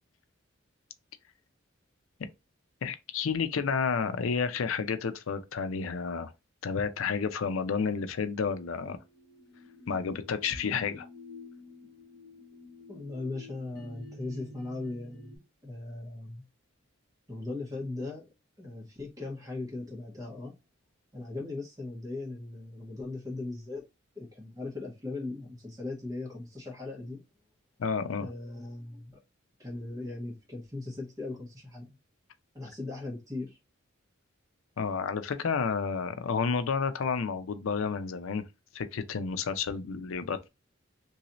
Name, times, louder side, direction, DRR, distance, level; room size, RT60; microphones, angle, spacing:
voice 1, 2.8-6.3 6.6-9.0 9.9-11.1 27.8-28.3 34.8-38.4 38.7-40.5, left 5 dB, 85° left, 0.5 m, -30 dB
sound 1, 9.1-15.4, left 2 dB, 50° right, 1.5 m, -50 dB
voice 2, 12.9-15.3 15.6-16.4 17.3-18.2 18.6-20.5 21.1-23.8 24.1-27.2 28.2-29.2 29.6-32.0 32.5-33.6, left 2 dB, 15° right, 1.3 m, -38 dB
3.1 x 2.7 x 2.9 m
head